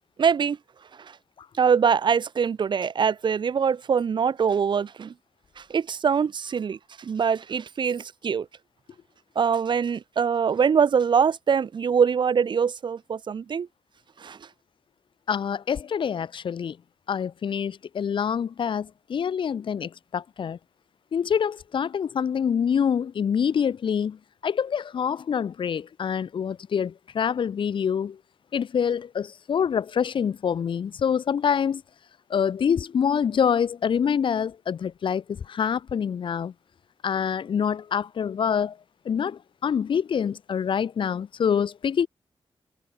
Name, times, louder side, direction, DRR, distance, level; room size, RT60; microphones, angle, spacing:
voice 1, 0.2-0.6 1.0-1.2 1.6-5.1 5.6-8.5 9.4-13.7 14.2-14.4, right 6 dB, 60° right, 2.0 m, -23 dB
voice 2, 15.3-16.8 17.1-20.6 21.1-24.2 24.4-28.2 28.5-31.8 32.3-36.5 37.0-38.8 39.0-42.1, left 7 dB, 70° left, 1.3 m, -26 dB
wide cardioid pair, 130°, 9 cm